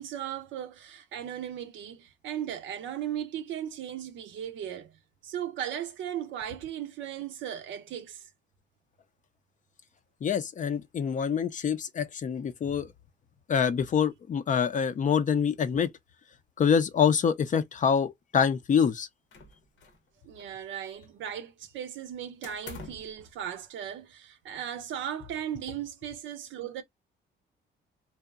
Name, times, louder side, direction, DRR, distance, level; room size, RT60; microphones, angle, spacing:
voice 1, 0.0-8.3 20.2-26.8, right 10 dB, 75° right, 0.5 m, -37 dB
voice 2, 10.2-12.9 13.5-15.9 16.6-19.1, left 7 dB, 40° left, 0.4 m, -26 dB
sound 1, 19.3-20.1 20.3-21.3 22.4-23.2, left 4 dB, 85° left, 0.9 m, -47 dB
2.8 x 2.1 x 2.3 m
cardioid pair, 90°, 20 cm